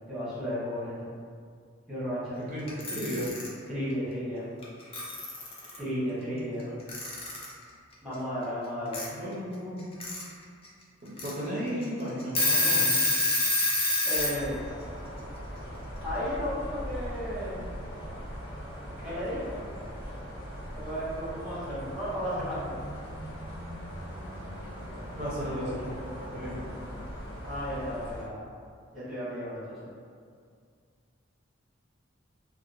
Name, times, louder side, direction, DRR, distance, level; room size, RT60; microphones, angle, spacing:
voice 1, 0.1-1.1 1.9-2.4 3.7-4.5 5.8-6.7 8.0-9.0 14.0-14.6 16.0-17.8 19.0-19.7 20.7-22.8 27.4-28.4 28.9-29.9, equal, ahead, -13 dB, 1.1 m, -34 dB
voice 2, 2.4-3.3 5.8-6.8 9.1-9.9 11.0-13.0 25.2-25.9 26.3-26.6, equal, 40° right, -7 dB, 0.5 m, -35 dB
Alarm / Clock, 2.7-3.5 4.6-4.7 4.9-5.8 6.9-7.5 8.9-9.0 9.8-10.2 10.6-10.7 11.2-11.3 11.8-11.9 12.2-14.4, left 2 dB, 30° left, 0.4 m, -26 dB
sound 1, 14.1-28.2, equal, 65° left, 1.3 m, -40 dB
2.7 x 2.1 x 2.5 m, 2.1 s
head